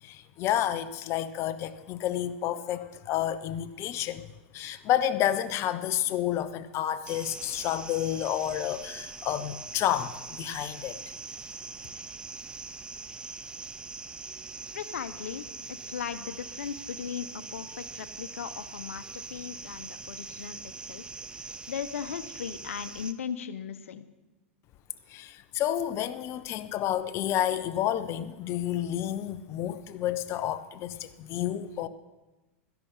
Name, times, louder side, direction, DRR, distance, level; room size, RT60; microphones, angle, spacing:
voice 1, 0.0-4.2 4.5-11.0 25.1-31.9, left 11 dB, 40° left, 12 dB, 0.8 m, -30 dB
sound 1, 7.1-23.1, right 4 dB, 10° right, 0.6 m, -42 dB
voice 2, 14.7-21.0 21.3-24.1, left 8 dB, 90° left, 11 dB, 0.9 m, -38 dB
13.5 x 10.5 x 5.6 m, 1.1 s
hypercardioid pair, 120°, 7 cm